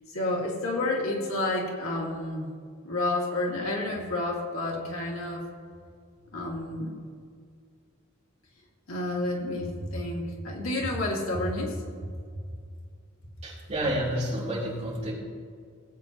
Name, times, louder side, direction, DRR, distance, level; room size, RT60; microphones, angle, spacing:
voice 1, 0.1-2.5 2.8-5.4 6.3-6.9 8.9-11.8, left 2 dB, 85° left, -2 dB, 2.3 m, -30 dB
voice 2, 13.4-15.1, right 1 dB, 30° right, -5 dB, 3.2 m, -29 dB
18.5 x 8.5 x 2.9 m, 2.1 s
head